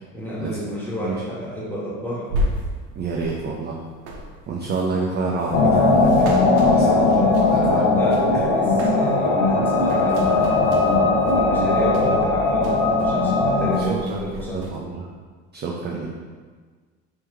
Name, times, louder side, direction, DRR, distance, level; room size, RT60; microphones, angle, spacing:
voice 1, 0.1-2.3 6.8-10.5 11.2-14.6, equal, 5° left, -7 dB, 1.4 m, -31 dB
sound 1, 2.3-7.8 8.1-9.3 9.6-13.3 13.5-14.8, equal, 65° right, 0.8 m, -33 dB
voice 2, 3.0-3.8 4.5-8.0 8.3-8.5 13.8-14.2 14.5-15.1 15.5-16.1, right 4 dB, 25° right, -1 dB, 0.4 m, -28 dB
sound 2, 5.5-13.8, left 3 dB, 50° left, 0.9 m, -19 dB
sound 3, 6.0-12.7, left 1 dB, 75° left, 1.4 m, -27 dB
3.4 x 3.0 x 3.3 m, 1.5 s
hypercardioid pair, 75°, 40 cm